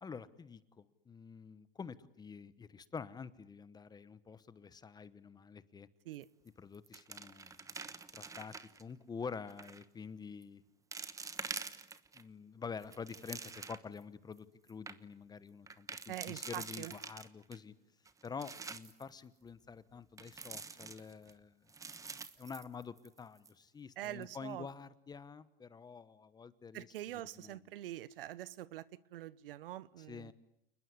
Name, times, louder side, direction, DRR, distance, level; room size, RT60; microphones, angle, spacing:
voice 1, 0.0-5.9 6.6-7.6 8.1-10.6 12.1-17.7 18.2-21.6 22.0-22.1 22.4-26.9 27.3-27.6 30.1-30.3, left 5 dB, 15° left, 15 dB, 1.1 m, -48 dB
sound 1, 6.1-6.5 6.7-8.8 9.5-9.9 10.4-10.5 10.9-12.2 12.7-14.0 14.4-14.5 14.7-15.0 15.7-17.6 18.1-19.0 20.2-21.3 21.7-23.2 23.5-23.6 24.1-24.3, right 4 dB, 10° right, 1.1 m, -46 dB
voice 2, 16.1-16.9 24.0-24.7 26.7-30.3, right 14 dB, 70° right, 19 dB, 1.1 m, -45 dB
29.0 x 20.5 x 9.9 m, 0.80 s
hypercardioid pair, 125°, 30 cm